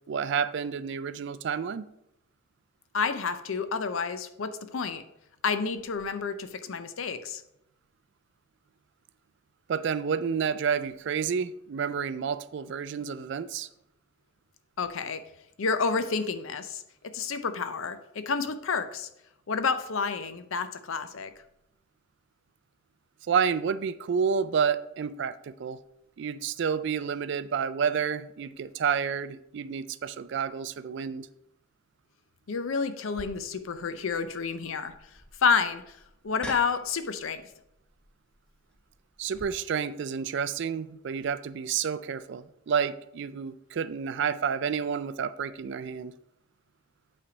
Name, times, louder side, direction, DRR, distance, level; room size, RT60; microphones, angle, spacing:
voice 1, 0.1-1.8 9.7-13.7 23.3-25.8 26.2-31.3 39.2-46.1, right 6 dB, 55° right, 14 dB, 0.3 m, -30 dB
voice 2, 2.9-5.0 5.4-7.4 14.8-15.2 15.6-16.8 17.1-19.1 19.5-21.3 32.5-34.9 35.4-35.8 36.2-37.4, left 5 dB, 75° left, 10 dB, 0.6 m, -29 dB
sound 1, 33.1-39.5, left 1 dB, 5° left, 0.6 m, -47 dB
8.5 x 3.3 x 5.0 m, 0.81 s
head